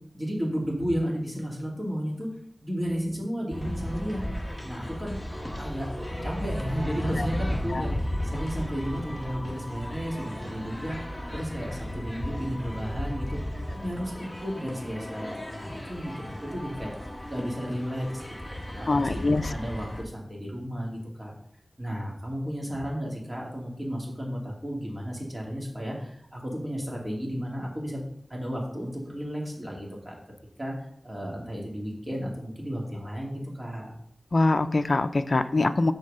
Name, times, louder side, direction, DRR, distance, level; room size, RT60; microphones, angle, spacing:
voice 1, 0.1-2.3 2.6-4.2 4.6-5.2 5.6-5.9 6.2-11.0 11.3-13.4 13.7-16.9 17.3-18.3 18.7-21.3 21.8-28.0 28.3-30.1 30.6-30.7 31.0-33.9, equal, 25° right, -2 dB, 2.5 m, -33 dB
sound 1, 3.5-20.0, left 1 dB, 5° left, 1.4 m, -35 dB
voice 2, 18.9-19.5 34.3-35.9, left 2 dB, 55° left, 11 dB, 0.5 m, -24 dB
6.4 x 4.5 x 6.6 m, 0.68 s
wide cardioid pair, 75°, 0 cm